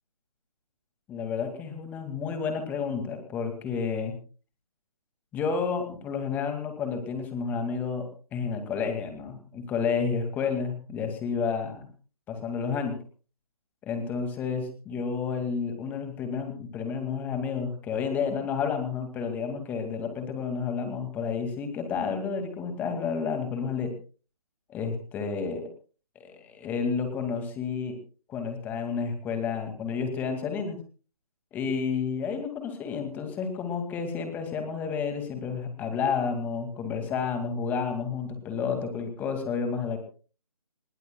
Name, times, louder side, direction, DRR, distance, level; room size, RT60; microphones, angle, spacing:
voice 1, 1.1-4.1 5.3-11.9 12.3-13.0 13.8-23.9 24.7-25.6 26.2-27.9 28.3-30.8 31.5-40.0, left 6 dB, 10° left, 6 dB, 2.2 m, -30 dB
26.0 x 21.5 x 2.3 m, 0.38 s
figure-of-eight pair, 155°, 19 cm